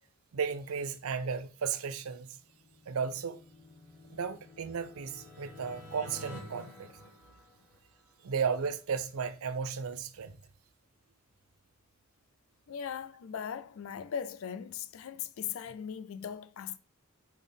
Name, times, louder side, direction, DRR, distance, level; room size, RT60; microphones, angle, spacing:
voice 1, 0.3-2.4 2.9-3.4 4.1-6.9 8.2-10.4, right 6 dB, 85° right, 0.5 m, -34 dB
sound 1, 2.3-8.1, left 1 dB, 10° left, 2.1 m, -51 dB
voice 2, 12.7-16.8, left 8 dB, 70° left, 0.4 m, -39 dB
4.1 x 3.4 x 3.4 m
head